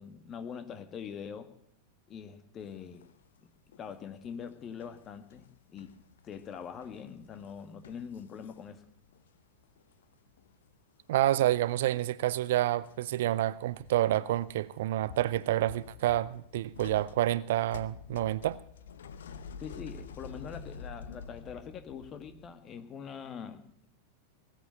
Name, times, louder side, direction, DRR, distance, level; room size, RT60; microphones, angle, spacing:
voice 1, 0.0-1.5 2.1-3.0 3.4-3.5 3.8-5.9 6.2-8.8 19.6-23.9, left 7 dB, 30° left, 1.8 m, -43 dB
sound 1, 2.8-3.4 3.7-9.3 9.6-10.7 10.9-11.2 11.5-12.2 12.8-14.5 14.9-22.5, left 6 dB, 60° left, 0.9 m, -49 dB
voice 2, 11.1-18.6, right 14 dB, 55° right, 0.5 m, -28 dB
19.0 x 8.2 x 8.1 m
figure-of-eight pair, 90°, 0 cm